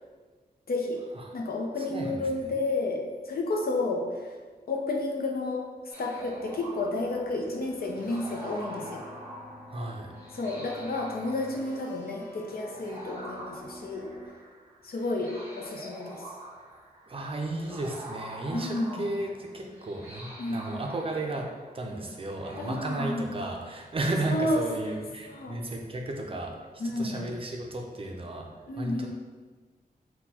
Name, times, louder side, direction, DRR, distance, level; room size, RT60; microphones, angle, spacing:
voice 1, 0.7-1.0 1.3-4.0 4.7-5.6 6.0-9.1 10.3-14.1 14.8-16.2 18.5-19.1 20.4-20.9 22.5-23.3 24.3-24.9 25.2-25.6 26.8-27.3 28.7-29.1, left 2 dB, 70° left, 1 dB, 0.6 m, -31 dB
voice 2, 1.8-2.2 9.7-10.1 17.1-21.5 21.7-26.5 27.0-28.5 28.8-29.1, right 2 dB, 35° right, 1 dB, 0.5 m, -33 dB
sound 1, 5.9-23.3, right 1 dB, 15° right, 1.3 m, -46 dB
sound 2, 6.2-14.3, equal, 10° left, 0.7 m, -48 dB
4.3 x 2.2 x 4.1 m, 1.4 s
wide cardioid pair, 160°, 16 cm